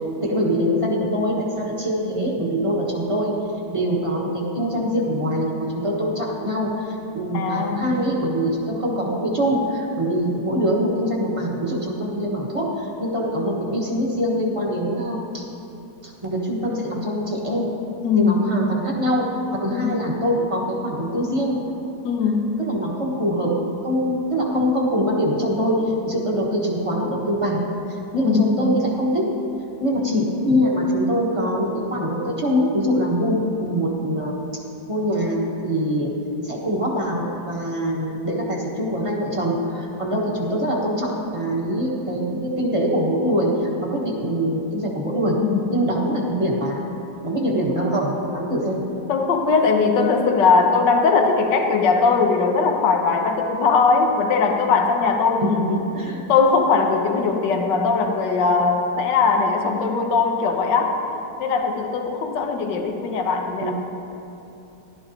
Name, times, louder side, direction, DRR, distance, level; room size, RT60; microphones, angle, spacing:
voice 1, 0.2-3.4 3.7-15.5 16.0-17.7 18.2-21.6 22.6-29.3 29.8-34.6 34.9-36.2 36.4-45.4 45.7-46.8 47.2-48.8 55.4-56.3 63.6-63.7, equal, 20° right, -2 dB, 1.2 m, -23 dB
voice 2, 7.3-8.0 18.0-18.5 19.7-19.9 22.0-22.5 28.1-28.6 30.0-30.3 45.4-45.8 49.1-55.9 56.3-61.0 61.4-63.7, left 4 dB, 85° left, 4 dB, 1.5 m, -20 dB
15.0 x 12.0 x 2.8 m, 2.9 s
omnidirectional pair, 1.9 m